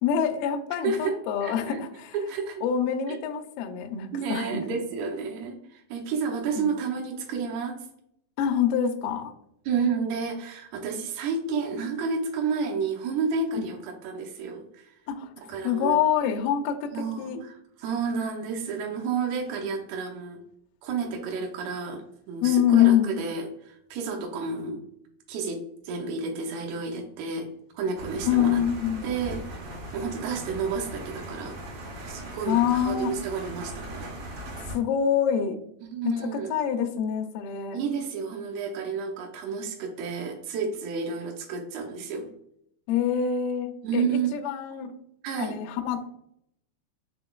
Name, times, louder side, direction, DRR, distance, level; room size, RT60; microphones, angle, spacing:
voice 1, 0.0-2.1 2.6-4.6 6.6-6.7 8.4-9.3 13.6-13.7 15.1-15.3 15.6-16.9 17.2-17.4 22.4-23.2 28.3-29.1 32.5-33.1 34.7-35.6 36.0-37.8 42.9-44.9 45.4-46.1, left 9 dB, 85° left, 3 dB, 2.0 m, -25 dB
voice 2, 0.8-1.2 1.4-1.8 2.1-2.6 3.1-3.2 4.1-7.8 9.7-14.9 15.5-16.0 16.9-20.4 20.8-24.8 25.3-28.6 29.0-31.6 32.1-34.1 35.8-36.6 37.7-42.3 43.8-44.3 45.2-45.6, right 5 dB, 90° right, 1 dB, 2.8 m, -31 dB
sound 1, 28.0-34.8, right 1 dB, 50° right, 2.2 m, -39 dB
6.0 x 3.8 x 2.3 m, 0.73 s
omnidirectional pair, 4.6 m